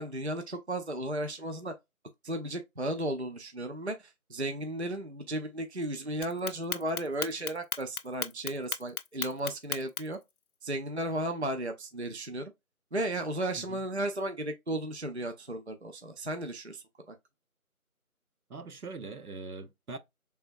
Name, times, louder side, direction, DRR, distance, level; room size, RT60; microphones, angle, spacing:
voice 1, 0.0-1.7 2.2-10.2 10.6-12.5 12.9-17.2, right 1 dB, 50° right, 0.5 m, -34 dB
Clock, 6.2-10.2, left 6 dB, 80° left, 0.6 m, -35 dB
voice 2, 18.5-20.0, right 3 dB, 80° right, 0.9 m, -42 dB
4.2 x 3.4 x 2.6 m
figure-of-eight pair, 175°, 43 cm